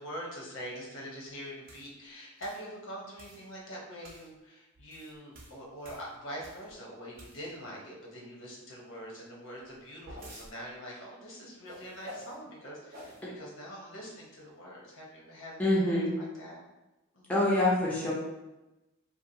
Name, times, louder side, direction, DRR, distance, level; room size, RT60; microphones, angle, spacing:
voice 1, 0.0-16.6 17.1-17.4, equal, 80° left, -3 dB, 0.8 m, -44 dB
sound 1, 1.7-1.9 2.4-2.7 3.2-3.5 4.0-4.3 4.8-6.7 7.1-7.7 9.6-10.5 11.7-12.4 12.9-13.2, equal, 45° right, 0.6 m, -49 dB
voice 2, 15.6-16.1 17.3-18.1, left 1 dB, 10° left, -5 dB, 0.5 m, -25 dB
2.8 x 2.2 x 2.6 m, 1.0 s
head